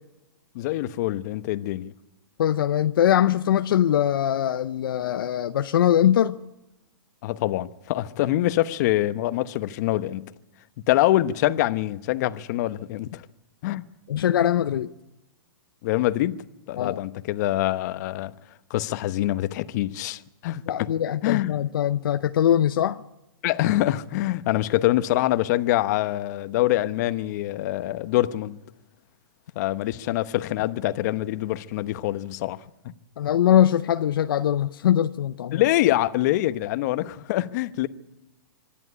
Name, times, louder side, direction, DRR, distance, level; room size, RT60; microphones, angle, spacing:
voice 1, 0.5-1.9 7.2-10.2 10.9-13.2 13.6-13.8 15.8-16.4 16.7-18.3 18.7-20.9 21.2-21.6 23.4-28.6 29.5-32.6 32.8-32.9 35.5-37.9, left 15 dB, 50° left, 1.0 m, -25 dB
voice 2, 2.4-6.4 14.1-14.9 16.8-17.0 20.7-23.0 33.2-35.6, left 10 dB, 70° left, 0.7 m, -22 dB
25.0 x 10.5 x 9.8 m
hypercardioid pair, 135°, 12 cm